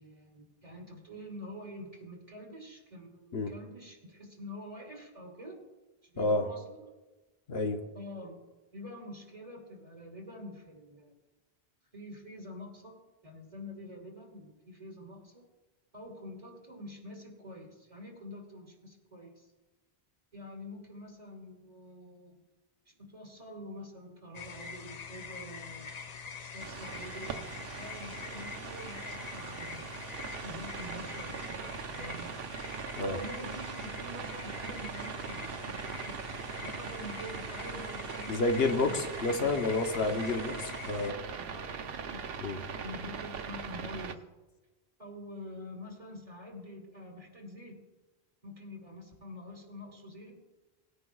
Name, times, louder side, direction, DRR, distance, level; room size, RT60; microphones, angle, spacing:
voice 1, 0.0-5.6 6.0-6.9 7.9-8.4 8.7-11.1 11.9-15.4 15.9-19.5 20.3-22.4 22.9-25.9 26.4-30.0 30.4-32.3 33.1-36.2 36.6-38.4 38.8-39.7 40.0-40.6 41.4-42.2 42.8-44.2 45.0-47.8 48.4-50.4, left 1 dB, 35° right, -2 dB, 2.7 m, -46 dB
voice 2, 6.2-6.5 7.5-7.8 33.0-33.2 38.3-40.6 40.9-41.2 42.4-42.6, left 3 dB, 75° left, 5 dB, 1.1 m, -29 dB
sound 1, 24.3-41.1, left 6 dB, 50° left, 0.6 m, -45 dB
sound 2, 26.6-44.2, right 6 dB, 70° right, 0.9 m, -41 dB
19.5 x 9.7 x 2.3 m, 1.1 s
omnidirectional pair, 1.1 m